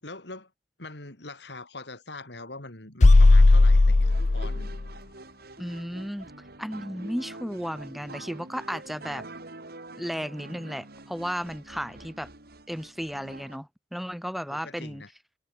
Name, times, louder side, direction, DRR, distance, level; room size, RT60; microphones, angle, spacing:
voice 1, 0.0-0.5 0.8-4.7 14.5-15.1, left 3 dB, 70° left, 3.9 m, -42 dB
sound 1, 3.0-4.8, left 2 dB, 40° left, 0.6 m, -16 dB
sound 2, 4.0-13.6, right 2 dB, 60° right, 4.2 m, -45 dB
voice 2, 5.6-6.3 6.6-9.2 10.0-12.3 12.7-15.0, equal, ahead, 2.4 m, -34 dB
head